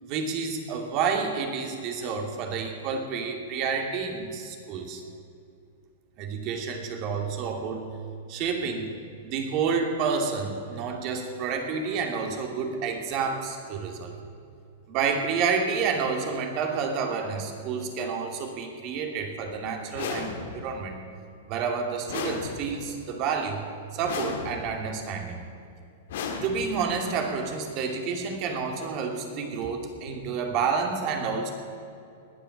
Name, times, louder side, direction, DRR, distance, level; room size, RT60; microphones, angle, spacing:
voice 1, 0.0-5.0 6.2-8.0 8.3-8.9 9.2-14.1 14.9-21.0 21.5-23.6 23.9-25.5 26.4-31.5, right 5 dB, 45° right, 3 dB, 2.6 m, -29 dB
sound 1, 19.9-20.8 22.1-23.0 24.0-24.9 26.1-27.0, left 5 dB, 70° left, 2.1 m, -35 dB
20.0 x 8.0 x 7.3 m, 2.5 s
hypercardioid pair, 120°, 0 cm